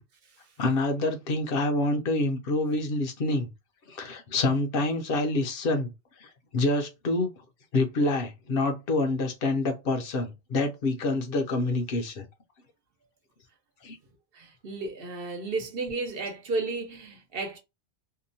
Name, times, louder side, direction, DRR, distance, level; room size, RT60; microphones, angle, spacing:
voice 1, 0.6-3.5 3.9-5.9 6.2-7.3 7.7-12.3 13.8-14.0, left 2 dB, 65° left, 0.8 m, -27 dB
voice 2, 14.3-17.6, right 3 dB, 65° right, 0.9 m, -33 dB
2.8 x 2.1 x 2.6 m
omnidirectional pair, 1.0 m